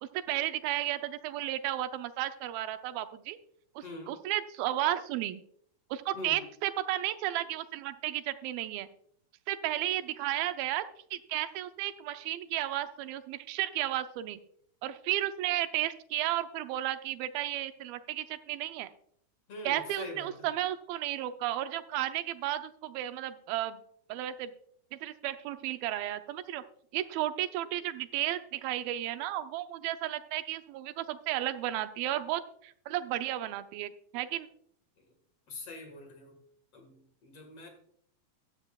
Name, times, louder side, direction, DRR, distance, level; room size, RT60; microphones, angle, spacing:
voice 1, 0.0-3.4 3.8-5.4 5.9-8.9 9.5-10.8 11.1-14.4 14.8-18.9 19.6-23.8 24.1-24.5 24.9-26.6 26.9-34.5, right 13 dB, 90° right, 10 dB, 2.5 m, -33 dB
voice 2, 3.8-4.1 6.1-6.4 19.5-20.3 35.5-36.4 36.7-37.7, left 2 dB, 50° left, 4 dB, 2.4 m, -43 dB
14.0 x 12.0 x 2.3 m, 0.64 s
omnidirectional pair, 4.1 m